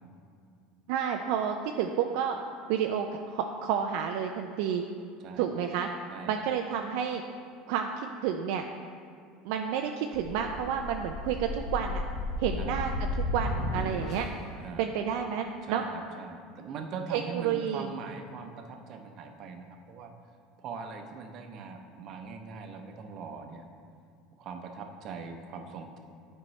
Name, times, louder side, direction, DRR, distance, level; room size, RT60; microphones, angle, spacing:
voice 1, 0.9-2.4 2.7-4.8 5.4-5.9 6.3-7.2 7.7-8.7 9.4-12.0 12.4-14.3 14.8-15.8 17.1-17.9, right 8 dB, 75° right, 4 dB, 0.3 m, -30 dB
sound 1, 10.1-14.5, left 1 dB, 50° left, 0.7 m, -34 dB
voice 2, 15.6-20.1 20.6-23.6 24.4-26.0, right 5 dB, 50° right, 5 dB, 0.7 m, -41 dB
8.7 x 4.5 x 3.1 m, 2.3 s
supercardioid pair, 115°, 0 cm